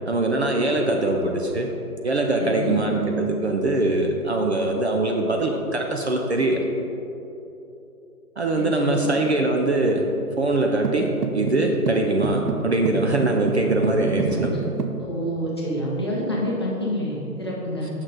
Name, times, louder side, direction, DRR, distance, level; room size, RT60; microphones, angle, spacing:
voice 1, 0.1-1.7 2.0-6.6 8.4-10.1 10.4-14.6, right 2 dB, 45° right, 2 dB, 0.6 m, -22 dB
voice 2, 2.4-2.8 8.5-9.1 14.2-14.4 15.0-17.9, equal, 15° left, -6 dB, 0.6 m, -28 dB
sound 1, 10.8-15.0, right 5 dB, 85° right, 0.9 m, -29 dB
8.7 x 6.2 x 3.9 m, 3.0 s
hypercardioid pair, 165°, 46 cm